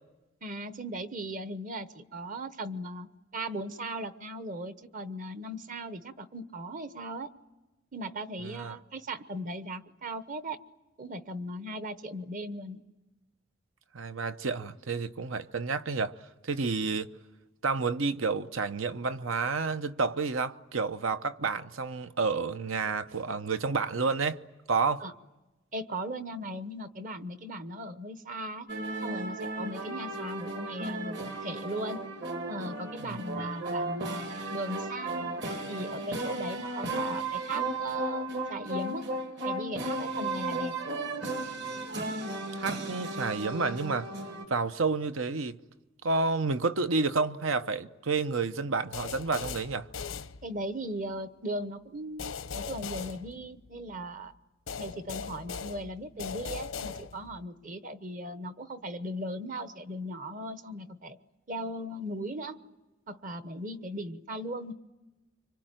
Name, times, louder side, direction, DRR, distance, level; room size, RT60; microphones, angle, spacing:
voice 1, 0.4-7.3 7.9-10.6 11.0-12.8 25.0-25.1 25.7-28.7 29.0-32.1 32.5-35.3 35.7-39.1 39.4-40.7 50.4-54.3 54.8-61.2 61.5-62.6 63.1-64.7, right 1 dB, 40° right, 1.0 m, -38 dB
voice 2, 8.4-8.8 13.9-16.2 16.4-17.1 17.6-24.4 24.7-25.0 33.0-33.2 42.5-44.1 44.5-45.6 46.0-49.9, right 4 dB, 80° right, 0.9 m, -30 dB
sound 1, 28.7-44.5, right 2 dB, 55° right, 2.4 m, -35 dB
sound 2, 48.9-50.9 52.2-53.9 54.7-57.4, left 5 dB, 90° left, 0.8 m, -39 dB
26.0 x 25.0 x 9.1 m
head